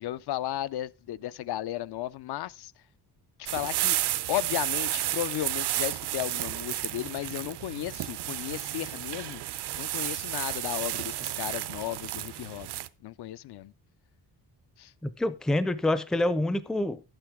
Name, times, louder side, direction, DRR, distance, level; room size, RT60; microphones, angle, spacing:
voice 1, 0.0-2.7 3.4-4.0 4.3-12.7 13.0-13.7 14.8-14.9, left 13 dB, 70° left, 0.5 m, -34 dB
sound 1, 3.5-12.9, right 14 dB, 75° right, 0.6 m, -32 dB
voice 2, 15.0-17.0, left 1 dB, ahead, 0.4 m, -27 dB
11.5 x 9.0 x 3.5 m
wide cardioid pair, 170°, 40 cm